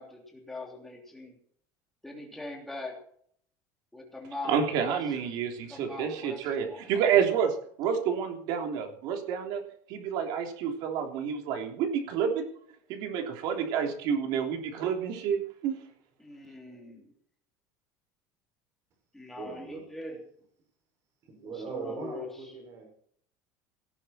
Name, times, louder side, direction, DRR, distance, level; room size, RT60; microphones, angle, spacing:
voice 1, 0.0-1.4 2.0-3.0 3.9-5.1 5.7-6.8 16.2-17.1 19.1-20.2 21.4-22.5, left 2 dB, 5° left, -1 dB, 3.2 m, -42 dB
voice 2, 4.5-9.6 9.9-12.4 12.9-15.8, right 7 dB, 55° right, 3 dB, 3.4 m, -29 dB
voice 3, 19.4-19.8 21.2-22.9, right 4 dB, 35° right, 3 dB, 6.0 m, -40 dB
18.5 x 13.0 x 4.4 m, 0.63 s
cardioid pair, 175°, 9 cm